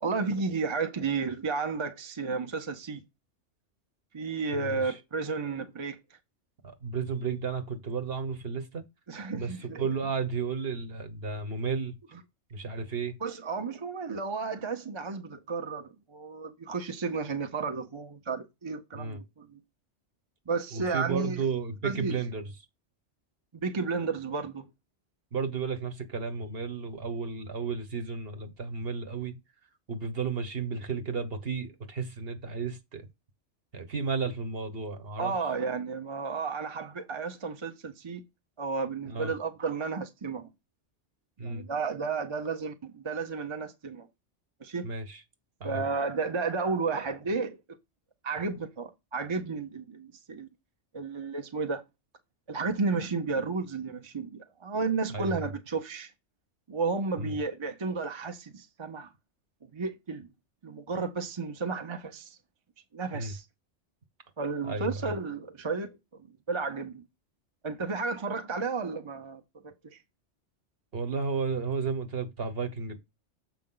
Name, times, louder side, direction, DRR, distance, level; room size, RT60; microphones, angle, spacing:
voice 1, 0.0-3.0 4.1-6.0 9.1-9.9 13.2-19.6 20.5-21.4 21.8-22.2 23.6-24.7 35.2-38.2 38.6-40.5 41.4-44.1 44.6-44.9 45.6-47.6 48.2-50.5 50.9-51.8 52.5-56.1 56.7-59.1 59.7-60.3 60.6-62.4 62.9-63.4 64.4-66.0 66.5-67.0 67.6-70.0, right 4 dB, 30° right, 0.7 m, -32 dB
voice 2, 4.5-4.9 6.6-8.8 9.3-9.5 9.8-11.9 12.5-13.2 18.9-19.2 20.7-22.4 25.3-29.3 29.9-33.1 33.7-35.3 39.1-39.3 41.4-41.6 44.8-45.2 45.6-45.8 55.1-55.3 57.2-57.3 63.1-63.3 64.6-65.1 70.9-73.0, right 5 dB, 55° right, 1.4 m, -33 dB
7.3 x 5.1 x 3.8 m
omnidirectional pair, 1.2 m